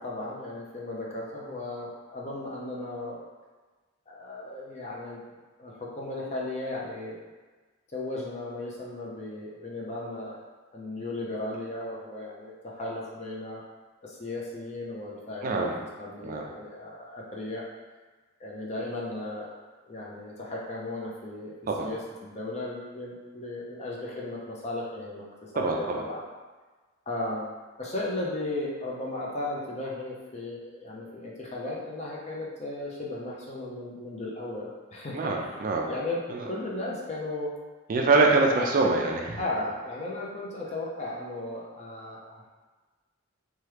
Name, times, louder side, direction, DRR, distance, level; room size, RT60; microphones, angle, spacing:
voice 1, 0.0-3.2 4.1-5.2 5.6-7.3 7.9-10.4 10.7-13.6 14.0-15.6 16.0-17.6 18.4-19.5 19.8-21.5 21.8-25.2 25.5-26.2 27.1-27.5 27.8-35.5 35.9-37.5 38.2-38.3 39.4-42.5, left 2 dB, 30° left, -3 dB, 0.5 m, -35 dB
voice 2, 15.4-15.8 16.2-16.5 21.7-21.9 25.6-26.0 35.1-35.9 36.3-36.4 37.9-39.4, right 3 dB, 40° right, 0 dB, 0.3 m, -24 dB
2.9 x 2.3 x 3.2 m, 1.3 s
head